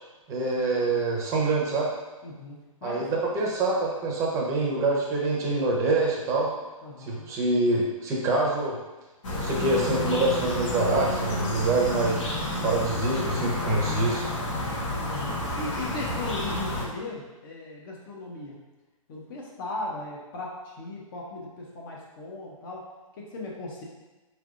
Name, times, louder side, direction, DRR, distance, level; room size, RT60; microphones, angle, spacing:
voice 1, 0.3-1.9 2.8-3.1 3.3-6.5 7.0-8.8 9.4-14.3, right 2 dB, 15° right, -3 dB, 0.7 m, -25 dB
voice 2, 2.2-3.2 6.8-7.3 15.1-18.6 19.1-23.8, left 2 dB, 35° left, -3 dB, 0.8 m, -38 dB
sound 1, 9.2-16.9, left 1 dB, 60° left, 1.1 m, -30 dB
4.5 x 3.4 x 2.5 m, 1.1 s
hypercardioid pair, 145°, 18 cm